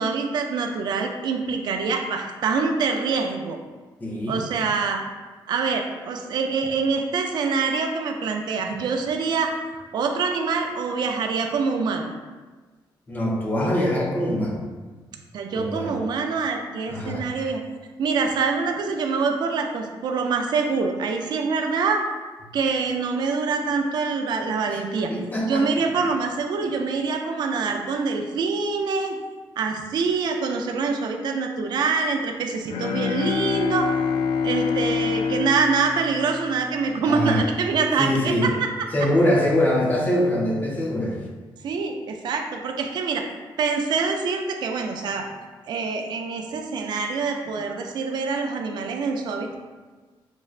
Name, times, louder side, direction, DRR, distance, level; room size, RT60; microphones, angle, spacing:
voice 1, 0.0-3.6 4.3-5.0 5.5-9.6 9.9-12.1 15.3-17.6 18.0-22.0 22.5-25.1 25.4-29.2 29.6-33.9 34.4-38.5 41.6-43.3 43.6-45.3 45.7-49.5, right 4 dB, 55° right, 4 dB, 0.4 m, -25 dB
voice 2, 4.0-4.4 13.1-14.6 15.5-15.9 16.9-17.2 24.7-24.8 25.1-25.7 37.0-37.4 38.0-38.5 38.9-41.2, left 1 dB, 20° left, -2 dB, 0.5 m, -23 dB
Bowed string instrument, 32.7-37.0, left 6 dB, 85° left, 0.4 m, -26 dB
6.1 x 2.1 x 2.3 m, 1.3 s
wide cardioid pair, 180°, 9 cm